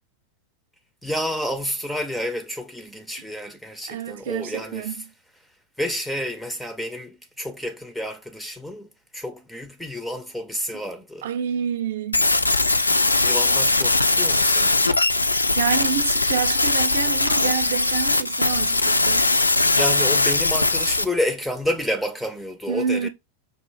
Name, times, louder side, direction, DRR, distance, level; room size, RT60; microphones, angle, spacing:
voice 1, 1.0-5.0 5.8-8.9 9.1-11.3 13.2-14.9 19.7-23.1, left 1 dB, ahead, 0.4 m, -29 dB
voice 2, 3.9-5.1 10.7-10.8 11.2-12.3 15.5-19.2 22.7-23.1, right 8 dB, 60° right, 0.5 m, -28 dB
sound 1, 12.1-21.0, left 2 dB, 80° left, 0.3 m, -20 dB
5.3 x 2.4 x 3.1 m
figure-of-eight pair, 90°, 0 cm